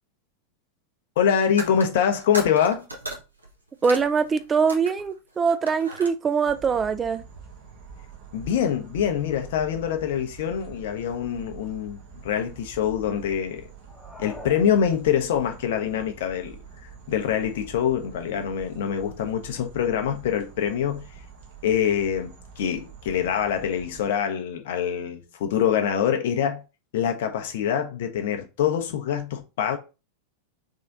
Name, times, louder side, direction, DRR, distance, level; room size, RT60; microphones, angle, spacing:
voice 1, 1.2-2.9 8.3-13.7 14.2-16.6 17.1-21.0 21.6-26.6 26.9-29.8, left 8 dB, 55° left, 0.8 m, -25 dB
sound 1, 1.5-5.2 5.5-6.1, right 2 dB, 80° right, 0.9 m, -36 dB
voice 2, 3.8-7.2, right 5 dB, 20° right, 0.4 m, -23 dB
sound 2, 6.4-24.1, right 6 dB, 50° right, 1.2 m, -45 dB
sound 3, 13.8-15.5, left 2 dB, 5° left, 0.9 m, -43 dB
3.6 x 3.3 x 4.0 m
figure-of-eight pair, 90°, 0 cm